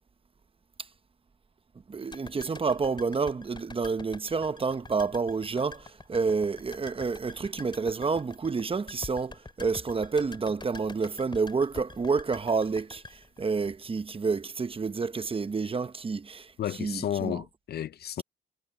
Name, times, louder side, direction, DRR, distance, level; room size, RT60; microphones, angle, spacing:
voice 1, 1.9-16.5 16.8-17.4, right 4 dB, 30° right, 1.0 m, -29 dB
sound 1, 2.1-14.3 14.6-14.7, left 3 dB, 25° left, 5.0 m, -46 dB
voice 2, 16.6-18.2, left 10 dB, 55° left, 0.5 m, -32 dB
cardioid pair, 90°, 20 cm